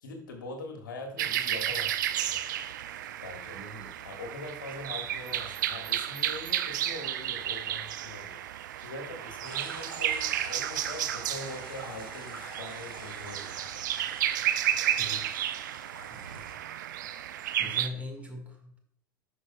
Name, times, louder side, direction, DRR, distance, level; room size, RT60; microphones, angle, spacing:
voice 1, 0.0-2.4 3.2-3.6 4.0-13.6, left 2 dB, 65° left, 4 dB, 1.5 m, -43 dB
sound 1, 1.2-17.9, right 11 dB, 60° right, 0.4 m, -32 dB
voice 2, 3.5-4.0 15.0-15.5 16.1-16.4 17.6-18.8, left 1 dB, 10° right, 2 dB, 1.6 m, -42 dB
sound 2, 9.4-16.5, right 3 dB, 80° right, 1.9 m, -45 dB
11.5 x 5.3 x 2.2 m, 0.71 s
figure-of-eight pair, 80°, 11 cm